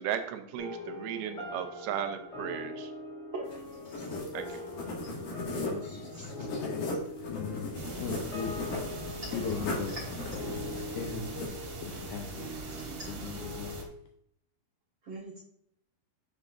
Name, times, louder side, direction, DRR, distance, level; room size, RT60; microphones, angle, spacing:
voice 1, 0.0-2.9 4.3-4.6, right 9 dB, 85° right, 2.6 m, -36 dB
sound 1, 0.6-13.9, left 2 dB, 25° left, 2.4 m, -42 dB
sound 2, 3.5-11.5, left 2 dB, 60° left, 3.1 m, -38 dB
voice 2, 3.8-4.2 5.0-5.1 5.7-6.5 7.3-7.6 8.9-9.1 12.7-12.8 15.0-15.4, right 3 dB, 70° right, 1.1 m, -44 dB
voice 3, 5.6-10.0 10.3-12.5 13.1-13.9, left 6 dB, 90° left, 1.7 m, -40 dB
sound 3, 7.7-13.8, right 3 dB, 55° right, 3.1 m, -42 dB
7.3 x 6.6 x 2.5 m
omnidirectional pair, 4.4 m